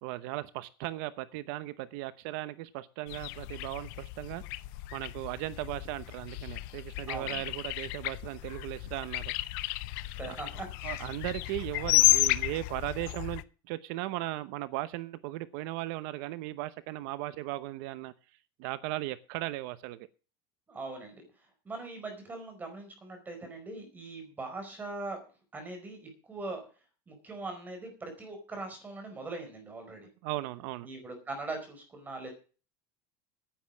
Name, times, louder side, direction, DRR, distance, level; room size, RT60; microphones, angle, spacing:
voice 1, 0.0-4.4 4.9-9.3 10.3-10.4 10.8-18.1 18.6-20.1 30.2-30.9, right 17 dB, 60° right, 15 dB, 0.8 m, -37 dB
sound 1, 3.1-13.4, left 19 dB, 60° left, 0.8 m, -32 dB
voice 2, 7.1-7.4 10.2-11.1 20.7-21.2 21.6-25.2 25.5-26.6 27.1-30.1 30.8-32.3, right 2 dB, 15° right, 4 dB, 4.6 m, -41 dB
10.0 x 9.7 x 7.3 m, 0.36 s
cardioid pair, 165°, 12 cm